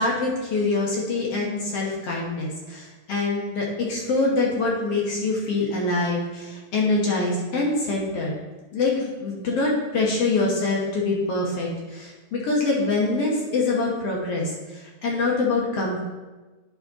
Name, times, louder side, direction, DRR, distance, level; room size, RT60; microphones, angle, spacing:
voice 1, 0.0-8.4 8.7-16.0, left 3 dB, 60° left, -3 dB, 1.8 m, -25 dB
11.5 x 4.2 x 3.6 m, 1.2 s
omnidirectional pair, 3.8 m